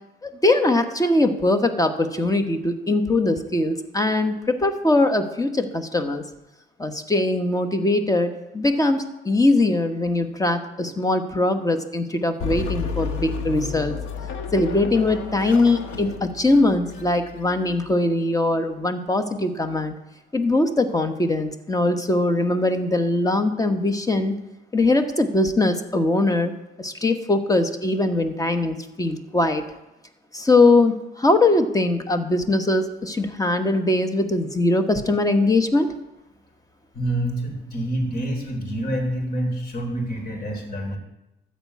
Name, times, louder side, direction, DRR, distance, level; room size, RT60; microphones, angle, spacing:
voice 1, 0.2-6.2 6.8-13.9 14.5-19.9 20.3-24.3 24.7-26.5 26.8-29.6 30.3-35.9, left 2 dB, 15° left, 8 dB, 1.2 m, -21 dB
sound 1, 12.4-17.9, left 5 dB, 90° left, 1.3 m, -32 dB
voice 2, 36.9-41.0, right 1 dB, 50° left, 3 dB, 3.4 m, -27 dB
13.0 x 4.5 x 8.5 m, 0.93 s
cardioid pair, 90°, 20 cm